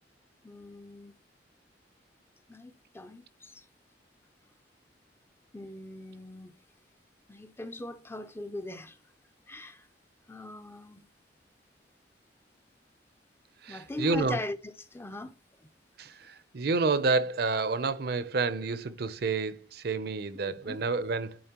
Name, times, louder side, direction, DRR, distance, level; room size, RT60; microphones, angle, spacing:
voice 1, 0.4-1.1 2.5-3.6 5.5-6.5 7.3-9.0 9.5-9.9 10.3-11.1 13.7-15.4 20.6-20.8, left 2 dB, 15° left, 0.4 m, -40 dB
voice 2, 13.6-14.4 16.0-21.4, right 3 dB, 60° right, 0.6 m, -29 dB
10.0 x 4.0 x 2.9 m
head